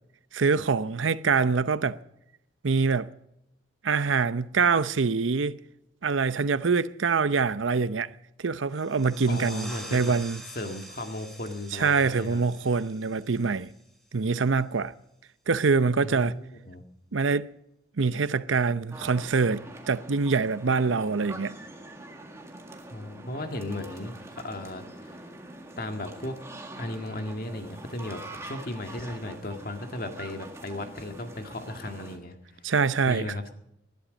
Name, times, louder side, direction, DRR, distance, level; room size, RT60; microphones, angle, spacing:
voice 1, 0.3-2.0 2.6-3.1 3.8-5.6 6.0-8.1 8.4-10.4 11.7-13.7 14.1-14.9 15.5-16.4 17.1-17.5 18.0-21.6 32.6-33.3, right 4 dB, 85° right, 0.7 m, -25 dB
sound 1, 8.7-14.1, right 1 dB, ahead, 2.9 m, -46 dB
voice 2, 9.3-10.1 10.6-12.4 16.0-16.8 22.9-25.1 25.8-26.4 26.8-32.4 33.1-33.4, left 1 dB, 50° left, 1.9 m, -36 dB
sound 2, 18.9-32.2, right 1 dB, 15° right, 1.8 m, -44 dB
19.5 x 12.0 x 5.2 m
head